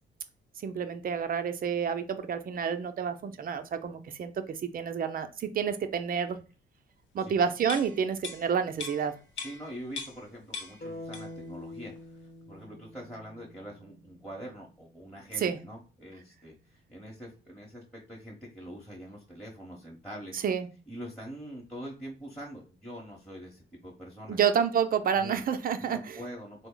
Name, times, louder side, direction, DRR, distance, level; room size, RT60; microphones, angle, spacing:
voice 1, 0.6-6.4 7.1-9.1 15.4-15.6 20.3-20.7 24.3-26.2, right 7 dB, 45° right, 9 dB, 0.5 m, -29 dB
sound 1, 7.6-10.3 10.5-11.5 11.8-12.0, left 4 dB, 70° left, 0.9 m, -41 dB
voice 2, 9.4-20.3 20.9-24.4 25.1-25.3 25.8-26.7, equal, 5° left, -4 dB, 1.0 m, -44 dB
sound 2, 10.8-14.9, left 2 dB, 45° left, 0.6 m, -46 dB
3.7 x 2.0 x 3.7 m, 0.34 s
cardioid pair, 90°, 20 cm